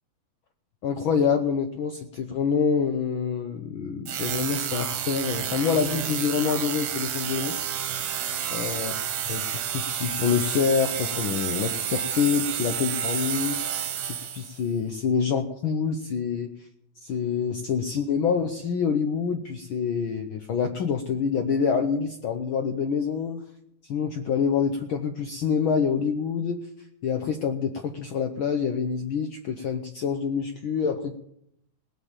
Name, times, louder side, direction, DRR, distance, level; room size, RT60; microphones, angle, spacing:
voice 1, 0.8-7.6 8.5-8.9 9.3-9.4 9.7-13.6 14.2-16.5 17.0-23.4 23.9-26.7 27.0-31.1, left 6 dB, 70° left, 6 dB, 1.2 m, -26 dB
sound 1, 4.1-14.6, right 9 dB, 70° right, 2.1 m, -30 dB
18.5 x 7.4 x 7.3 m, 0.74 s
omnidirectional pair, 3.3 m